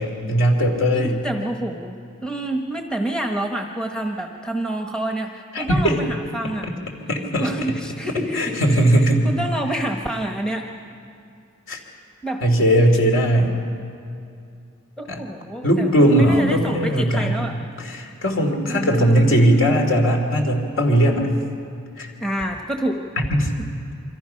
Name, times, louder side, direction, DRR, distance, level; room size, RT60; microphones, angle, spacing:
voice 1, 0.0-1.1 5.5-6.0 7.1-7.5 8.3-9.3 11.7-11.8 12.4-13.5 15.1-15.2 15.6-17.4 17.8-21.3 22.0-22.1 23.3-23.5, equal, 60° left, 2 dB, 3.1 m, -18 dB
voice 2, 0.9-6.7 7.4-8.5 9.0-10.7 12.2-12.4 15.0-17.6 18.7-19.3 22.2-23.0 23.6-23.7, right 1 dB, 5° left, 2 dB, 1.1 m, -28 dB
27.5 x 24.5 x 5.8 m, 2.5 s
head